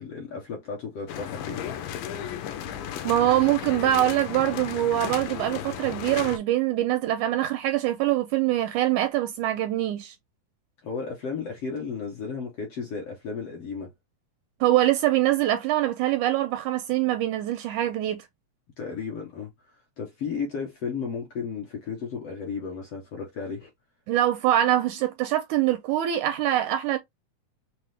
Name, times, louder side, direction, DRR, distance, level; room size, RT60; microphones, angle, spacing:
voice 1, 0.0-1.6 10.8-13.9 18.8-19.5 20.0-23.7, left 5 dB, 65° left, 1.6 m, -34 dB
sound 1, 1.1-6.4, left 9 dB, 85° left, 2.2 m, -34 dB
voice 2, 3.0-10.2 14.6-18.3 24.1-27.0, right 13 dB, 80° right, 1.8 m, -24 dB
5.8 x 2.0 x 3.2 m
omnidirectional pair, 3.8 m